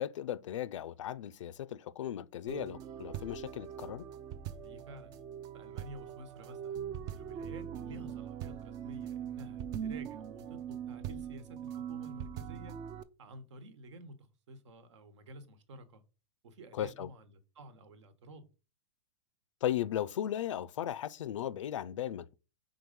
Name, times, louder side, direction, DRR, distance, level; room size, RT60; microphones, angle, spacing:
voice 1, 0.0-4.1 16.7-17.1 19.6-22.3, left 11 dB, 90° left, 0.5 m, -36 dB
sound 1, 2.5-13.0, right 9 dB, 20° right, 0.3 m, -41 dB
voice 2, 4.6-5.2 5.5-6.8 7.1-12.8 13.2-14.2 14.5-16.0 16.4-18.5, right 1 dB, 70° right, 1.3 m, -51 dB
4.7 x 3.9 x 5.3 m
supercardioid pair, 155°, 16 cm